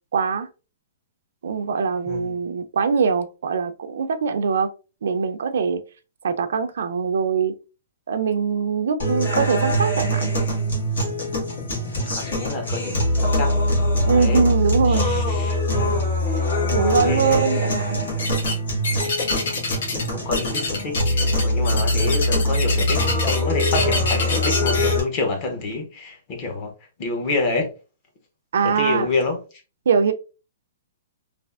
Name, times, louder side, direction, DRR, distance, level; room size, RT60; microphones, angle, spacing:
voice 1, 0.1-0.5 1.4-4.7 5.0-5.8 6.2-7.5 8.1-10.3 14.1-15.1 16.7-18.0 28.5-29.1 29.9-30.1, right 6 dB, 70° right, 0.4 m, -22 dB
voice 2, 2.1-2.4 11.6-13.6 14.0-14.4 14.9-15.6 16.3-16.5 16.9-17.4 19.4-26.7 27.0-27.7 28.6-29.4, left 3 dB, 25° left, 0.6 m, -28 dB
sound 1, 9.0-25.0, left 1 dB, 85° left, 1.5 m, -23 dB
sound 2, 18.2-18.6 18.8-20.1 20.3-24.9, left 3 dB, 60° left, 0.9 m, -26 dB
3.3 x 2.4 x 2.3 m
hypercardioid pair, 175°, 0 cm